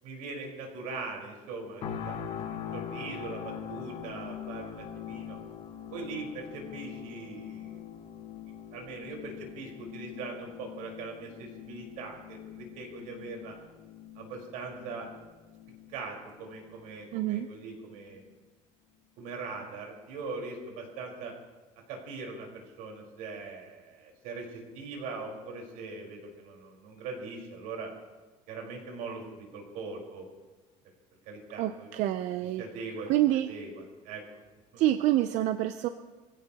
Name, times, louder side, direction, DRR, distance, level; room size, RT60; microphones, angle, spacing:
voice 1, 0.0-5.4 5.9-7.8 8.7-13.5 14.1-15.1 15.9-18.2 19.2-21.3 21.9-27.9 28.5-30.2 31.2-31.9 32.6-33.1 33.5-34.2, right 3 dB, 85° right, 1 dB, 4.5 m, -41 dB
sound 1, 1.8-16.8 17.3-17.5, left 9 dB, 45° left, 1.4 m, -43 dB
voice 2, 17.1-17.5 31.6-32.6 33.1-33.5 34.8-35.9, right 14 dB, 60° right, 9 dB, 0.5 m, -27 dB
24.0 x 16.0 x 2.9 m, 1.3 s
cardioid pair, 175°, 14 cm